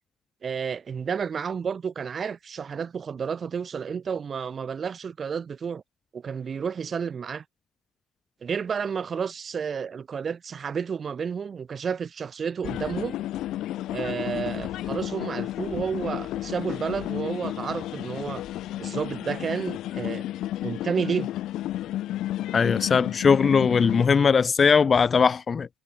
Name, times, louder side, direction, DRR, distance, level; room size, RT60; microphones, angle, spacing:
voice 1, 0.4-5.8 6.1-7.4 8.4-13.2 13.9-18.4 18.8-20.2 20.6-21.3, right 6 dB, 30° right, 1.6 m, -31 dB
sound 1, 12.6-24.1, left 14 dB, 65° left, 1.9 m, -32 dB
voice 2, 22.5-25.7, left 6 dB, 30° left, 0.6 m, -20 dB
cardioid pair, 145°, 0 cm